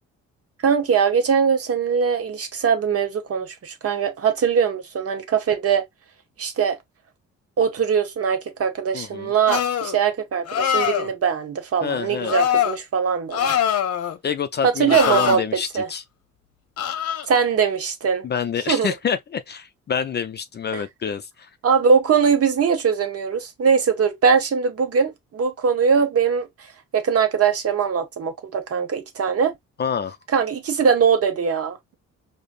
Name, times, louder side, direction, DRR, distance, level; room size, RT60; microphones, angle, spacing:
voice 1, 0.6-5.8 6.4-6.8 7.6-13.5 14.6-15.4 15.7-15.9 17.3-18.3 18.7-18.9 20.7-20.8 21.6-26.7 26.9-29.5 30.3-31.9, right 6 dB, 50° right, 1.0 m, -21 dB
voice 2, 8.9-9.3 11.8-12.3 14.2-16.0 18.2-21.5 29.8-30.2, left 7 dB, 35° left, 0.4 m, -27 dB
sound 1, 9.5-10.0 10.5-11.1 12.2-12.8 13.3-14.2 14.9-15.4 16.8-17.3, left 9 dB, 55° left, 0.8 m, -23 dB
5.0 x 2.1 x 2.5 m
cardioid pair, 90°, 30 cm